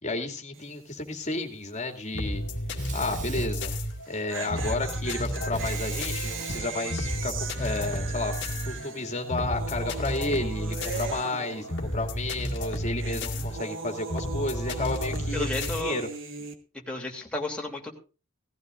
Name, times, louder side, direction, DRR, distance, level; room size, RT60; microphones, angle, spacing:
voice 1, 0.0-2.4 2.9-3.7 4.1-8.3 8.7-11.7 11.9-16.1, left 2 dB, 30° left, 3 dB, 2.6 m, -32 dB
sound 1, 0.5-0.9 1.1-1.2 3.9-12.3 12.5-16.5, right 4 dB, 60° right, 1.7 m, -39 dB
sound 2, 2.1-15.8, equal, 55° left, 2.0 m, -32 dB
Sink (filling or washing), 2.7-4.4 5.5-7.8, right 3 dB, 35° right, 1.7 m, -41 dB
voice 2, 15.3-16.0 16.9-17.9, left 2 dB, 5° left, -2 dB, 3.0 m, -32 dB
18.0 x 14.5 x 2.6 m, 0.34 s
head